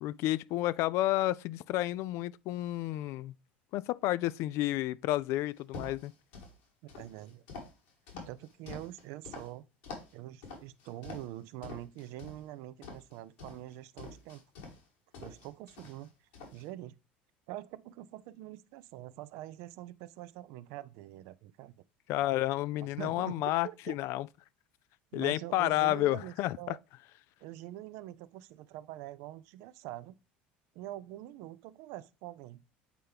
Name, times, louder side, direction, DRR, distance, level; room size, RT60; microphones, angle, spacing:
voice 1, 0.0-3.3 3.7-6.1 8.1-8.3 22.1-24.3 25.1-26.8, left 16 dB, 60° left, 0.3 m, -31 dB
sound 1, 5.6-6.5 6.9-9.5 9.8-10.1 10.4-11.4 11.6-12.4 12.8-14.8 15.1-16.1 16.3-16.7, left 4 dB, 80° left, 2.9 m, -46 dB
voice 2, 6.8-7.4 8.3-9.7 10.1-14.4 15.2-16.1 16.5-17.0 17.5-21.7 23.0-23.9 25.1-26.8 27.4-30.2 30.7-32.6, right 14 dB, 70° right, 0.5 m, -45 dB
8.1 x 4.3 x 3.3 m
hypercardioid pair, 75°, 5 cm